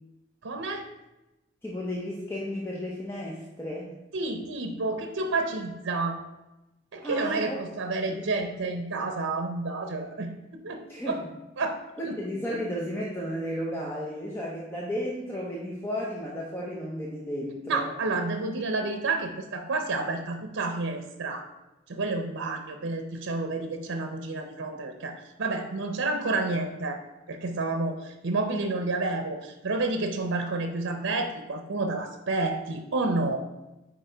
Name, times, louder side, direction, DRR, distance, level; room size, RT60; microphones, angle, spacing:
voice 1, 0.4-0.8 4.1-6.2 6.9-11.2 11.6-12.2 17.7-21.5 21.9-27.0 27.3-33.5, right 3 dB, 80° right, 5 dB, 0.7 m, -30 dB
voice 2, 1.6-3.9 7.0-7.6 8.1-8.2 10.9-11.2 12.0-17.9, equal, 10° left, -4 dB, 0.7 m, -33 dB
8.7 x 3.0 x 5.0 m, 1.0 s
head